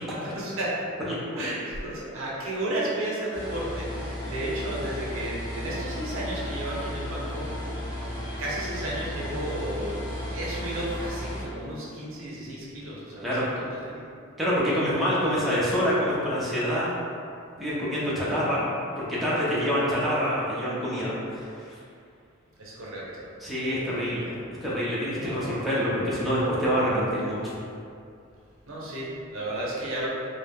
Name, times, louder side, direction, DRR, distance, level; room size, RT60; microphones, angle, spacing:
voice 1, 0.2-0.8 1.3-7.7 8.0-8.1 8.4-10.0 10.3-13.5 13.8-14.1 18.3-18.6 22.6-23.3 25.2-25.6 28.7-30.1, right 1 dB, 70° right, -6 dB, 0.6 m, -33 dB
voice 2, 1.1-1.4 13.2-13.4 14.4-16.9 17.6-18.7 19.0-21.8 23.4-24.4 24.6-27.5, equal, ahead, -9 dB, 0.4 m, -26 dB
sound 1, 3.3-11.4, left 1 dB, 40° left, 0.8 m, -34 dB
2.2 x 2.0 x 3.3 m, 2.4 s
head